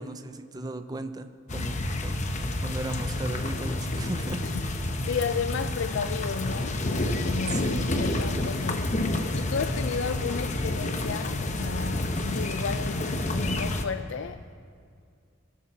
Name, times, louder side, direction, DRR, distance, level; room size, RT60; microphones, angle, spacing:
voice 1, 0.0-4.4 7.5-7.8, right 2 dB, 20° right, 0.6 m, -37 dB
sound 1, 1.5-13.8, left 1 dB, 35° left, 0.8 m, -29 dB
voice 2, 5.0-6.8 7.2-13.1 13.3-14.5, left 6 dB, 60° left, 0.4 m, -33 dB
22.0 x 7.5 x 5.9 m
head